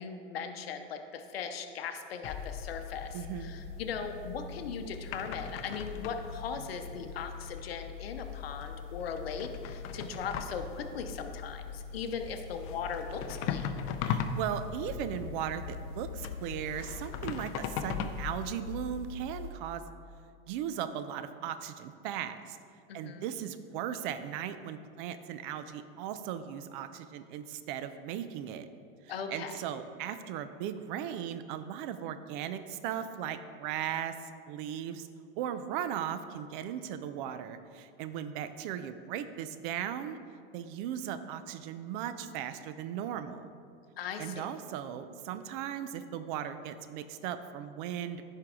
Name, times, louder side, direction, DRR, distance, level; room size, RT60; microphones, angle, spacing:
voice 1, 0.0-13.7 22.9-23.3 29.1-29.6 44.0-44.5, left 6 dB, 90° left, 6 dB, 0.7 m, -39 dB
sound 1, 2.2-19.5, left 7 dB, 45° left, 0.6 m, -39 dB
voice 2, 3.1-3.5 14.0-19.8 20.5-22.6 22.9-28.7 29.3-35.1 35.4-40.2 40.5-43.5 44.2-48.2, right 9 dB, 60° right, 11 dB, 0.6 m, -37 dB
10.0 x 4.6 x 3.6 m, 2.3 s
hypercardioid pair, 105°, 29 cm